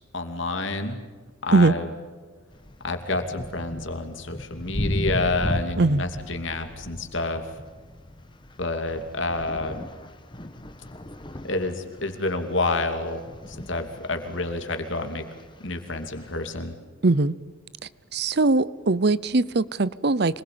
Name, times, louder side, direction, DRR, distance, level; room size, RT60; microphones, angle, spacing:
voice 1, 0.1-1.0 1.4-1.9 2.8-7.4 8.6-9.8 11.4-15.2 15.6-16.7, left 2 dB, 65° left, 6 dB, 2.8 m, -28 dB
sound 1, 2.5-16.6, left 1 dB, 25° left, 1.3 m, -37 dB
voice 2, 17.0-17.3 18.1-20.4, right 3 dB, 50° right, 18 dB, 0.7 m, -21 dB
26.5 x 21.0 x 8.7 m, 1.5 s
head